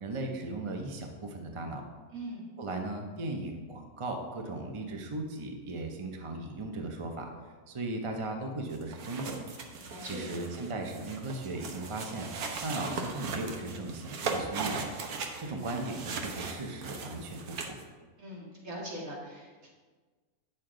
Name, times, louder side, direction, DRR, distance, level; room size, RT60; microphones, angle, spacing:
voice 1, 0.0-1.8 2.6-7.3 7.7-9.4 10.0-12.3 12.6-14.8 15.4-17.7, right 2 dB, 30° right, 3 dB, 0.6 m, -37 dB
voice 2, 2.1-2.5 9.7-10.4 18.2-19.7, equal, 65° right, -5 dB, 2.5 m, -41 dB
sound 1, 8.7-17.8, right 4 dB, 85° right, 1.3 m, -38 dB
9.1 x 6.7 x 3.8 m, 1.4 s
omnidirectional pair, 1.5 m